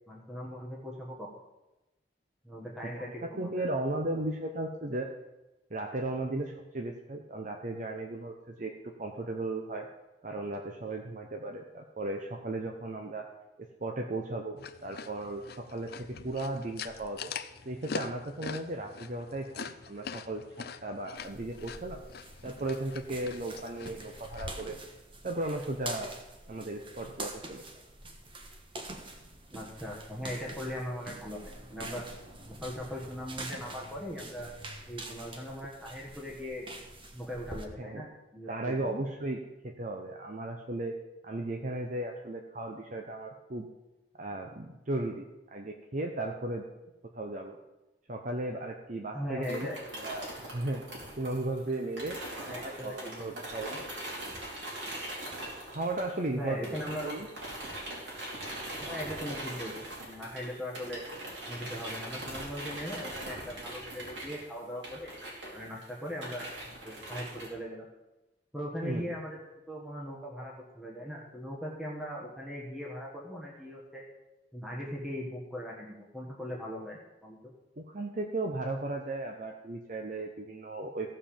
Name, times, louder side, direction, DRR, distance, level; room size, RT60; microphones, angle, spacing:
voice 1, 0.1-1.3 2.4-3.6 29.5-32.0 32.5-34.5 34.9-36.7 37.1-39.0 49.1-49.8 52.5-53.3 56.3-57.3 58.8-59.7 60.0-61.0 61.5-65.1 65.5-66.5 66.8-67.9 68.5-69.4 69.7-74.0 74.5-77.5, equal, 5° right, -3 dB, 1.6 m, -39 dB
voice 2, 2.8-5.1 5.7-9.9 10.2-13.3 13.6-17.3 17.6-22.0 22.4-24.8 25.2-26.1 26.5-27.6 37.8-38.0 38.5-40.9 41.2-43.7 44.2-46.6 47.1-47.6 48.1-50.8 51.2-52.2 52.4-53.8 55.7-56.8 57.0-57.3 68.8-69.2 77.8-81.1, right 2 dB, 45° right, 3 dB, 0.9 m, -36 dB
sound 1, 14.6-24.6, left 5 dB, 60° left, 0.6 m, -43 dB
sound 2, 21.2-37.6, right 2 dB, 30° right, 1.3 m, -45 dB
sound 3, 49.4-56.3 56.6-67.5, right 1 dB, 85° right, 4.3 m, -41 dB
15.0 x 5.6 x 7.1 m, 1.0 s
head